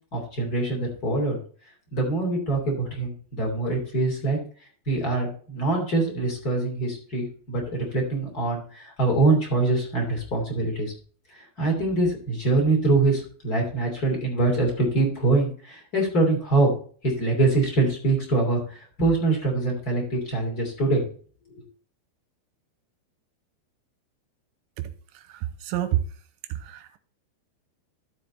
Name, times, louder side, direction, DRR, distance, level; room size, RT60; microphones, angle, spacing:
voice 1, 0.1-1.4 1.9-4.4 4.9-10.9 11.6-16.7 17.0-21.0 21.5-21.6, right 3 dB, 25° left, 0 dB, 2.5 m, -24 dB
voice 2, 25.3-26.0 26.6-27.0, right 14 dB, 80° right, 11 dB, 2.9 m, -28 dB
13.5 x 4.9 x 4.1 m, 0.44 s
omnidirectional pair, 5.6 m